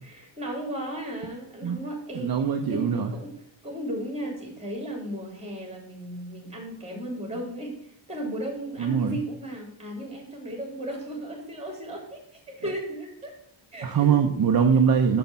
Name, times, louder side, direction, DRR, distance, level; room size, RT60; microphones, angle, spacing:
voice 1, 0.0-2.4 2.6-3.3 3.6-13.3 13.7-14.2, right 1 dB, 15° right, 0 dB, 3.3 m, -35 dB
voice 2, 2.1-3.1 8.8-9.2 13.8-15.2, right 7 dB, 45° right, 4 dB, 0.8 m, -22 dB
6.7 x 6.4 x 6.9 m, 0.67 s
wide cardioid pair, 135°, 49 cm